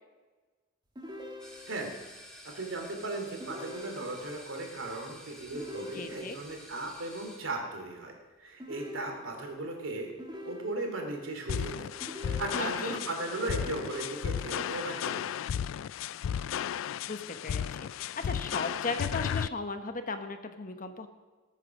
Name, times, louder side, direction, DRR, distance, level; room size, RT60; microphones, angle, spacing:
sound 1, 0.9-2.0 3.4-4.5 5.5-6.6 8.6-9.6 10.2-11.2 12.0-13.0 13.7-14.7, left 1 dB, 20° right, 1.8 m, -45 dB
sound 2, 1.4-7.4, equal, 5° left, 3.2 m, -51 dB
voice 1, 2.4-8.1 8.4-10.1 10.4-11.9 12.2-15.4, right 2 dB, 90° right, 3 dB, 2.8 m, -37 dB
voice 2, 5.9-6.4 12.5-13.0 17.1-21.1, left 3 dB, 45° left, 7 dB, 1.1 m, -37 dB
sound 3, 11.5-19.5, left 8 dB, 80° left, 0.3 m, -34 dB
20.0 x 8.3 x 6.4 m, 1.3 s
head